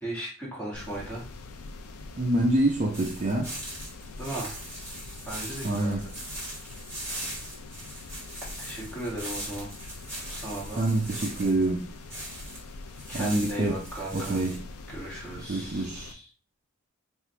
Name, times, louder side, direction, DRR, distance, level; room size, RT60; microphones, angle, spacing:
voice 1, 0.0-1.2 4.2-4.5 5.2-6.0 8.6-9.7 10.3-10.8 13.1-14.4 14.9-16.3, right 1 dB, 5° left, 1.5 m, -36 dB
sound 1, 0.7-16.1, left 3 dB, 90° left, 0.5 m, -44 dB
voice 2, 2.2-3.5 5.6-6.0 7.2-7.3 10.8-11.9 13.1-13.8 14.1-14.6 15.5-16.1, right 2 dB, 30° right, 0.4 m, -26 dB
sound 2, 2.9-12.6 12.9-14.6, right 1 dB, 10° right, 1.3 m, -40 dB
3.4 x 2.5 x 4.3 m
head